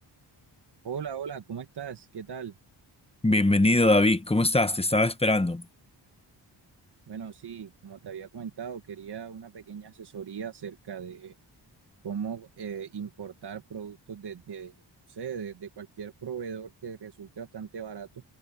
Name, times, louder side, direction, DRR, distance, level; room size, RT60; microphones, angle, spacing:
voice 1, 0.8-2.5 7.1-11.4 12.0-14.7 15.1-18.2, right 7 dB, 60° right, 1.7 m, -38 dB
voice 2, 3.2-5.6, left 2 dB, 15° left, 1.1 m, -22 dB
wide cardioid pair, 95°, 44 cm